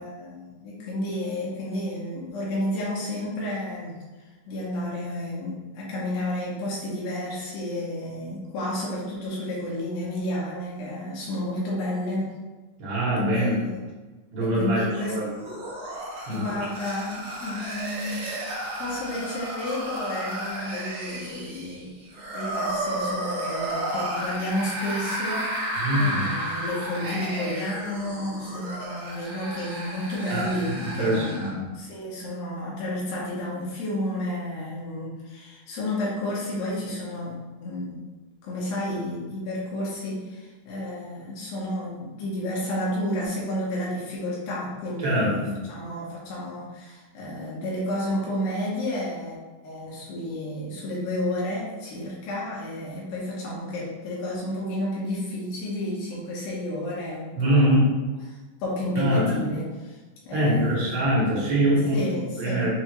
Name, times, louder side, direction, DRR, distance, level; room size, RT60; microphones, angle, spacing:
voice 1, 0.0-4.0 4.5-12.3 13.3-13.7 14.4-15.2 16.3-18.3 18.8-38.1 38.4-49.4 49.6-57.8 58.6-60.0 60.3-61.0 61.6-62.7, left 1 dB, 80° left, -6 dB, 2.9 m, -31 dB
voice 2, 12.8-13.6 14.3-15.2 16.3-16.4 25.8-26.2 30.3-31.6 45.0-45.6 57.4-57.9 59.0-59.5 60.3-62.0 62.4-62.7, equal, 80° right, -6 dB, 3.0 m, -23 dB
sound 1, 14.9-31.5, right 1 dB, 55° right, 1.5 m, -33 dB
6.9 x 2.5 x 3.0 m, 1.3 s
omnidirectional pair, 4.3 m